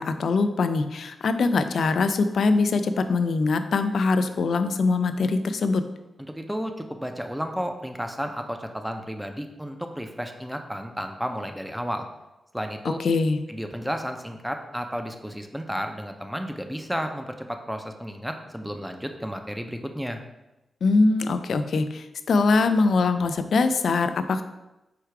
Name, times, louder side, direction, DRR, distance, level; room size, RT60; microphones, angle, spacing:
voice 1, 0.0-5.8 12.8-13.4 20.8-24.4, left 3 dB, 75° left, 10 dB, 0.3 m, -23 dB
voice 2, 6.3-12.1 12.5-13.0 13.5-20.2, equal, 5° right, 5 dB, 0.5 m, -32 dB
4.6 x 2.4 x 4.6 m, 0.98 s
cardioid pair, 65°, 0 cm